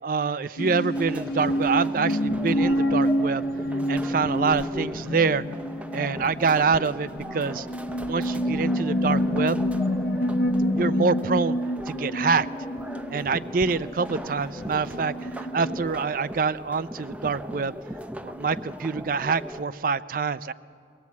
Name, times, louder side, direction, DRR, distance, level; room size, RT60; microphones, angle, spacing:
voice 1, 0.0-3.4 3.9-5.4 5.9-7.7 8.0-9.6 10.7-11.6 11.9-12.5 13.1-17.7 18.2-20.5, right 5 dB, 50° right, 15 dB, 0.5 m, -26 dB
sound 1, 0.6-15.9, equal, 60° left, 0.8 m, -28 dB
sound 2, 0.9-19.6, equal, 10° right, 0.6 m, -39 dB
23.0 x 17.5 x 8.4 m, 2.4 s
head